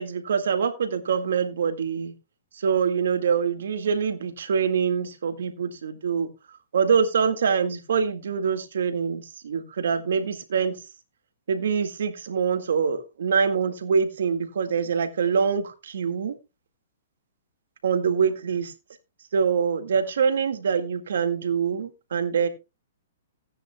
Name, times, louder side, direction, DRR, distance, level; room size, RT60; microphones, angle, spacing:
voice 1, 0.0-2.1 2.6-6.3 6.7-10.8 11.5-16.4 17.8-18.7 19.3-22.5, right 6 dB, 75° right, 9 dB, 1.9 m, -24 dB
15.5 x 9.9 x 2.3 m, 0.26 s
hypercardioid pair, 135°, 0 cm